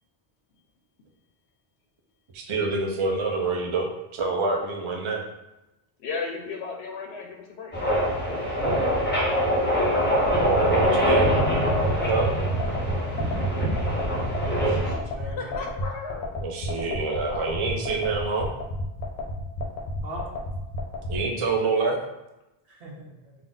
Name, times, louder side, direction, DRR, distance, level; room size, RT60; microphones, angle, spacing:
voice 1, 2.3-3.9 4.1-5.2 10.4-11.3 12.1-12.3 14.6-14.7 16.4-18.5 21.1-22.0, right 3 dB, 40° right, 0 dB, 0.5 m, -26 dB
voice 2, 6.0-7.7 15.4-16.3, left 4 dB, 85° left, 2 dB, 0.9 m, -34 dB
sound 1, 7.7-14.9, equal, 10° left, 0.7 m, -24 dB
sound 2, 10.3-21.2, left 1 dB, 45° left, 0.8 m, -31 dB
voice 3, 11.7-12.1 14.6-15.9 20.0-20.3 22.6-23.4, right 1 dB, 70° right, -3 dB, 1.0 m, -40 dB
3.6 x 2.4 x 3.9 m, 0.94 s
omnidirectional pair, 1.1 m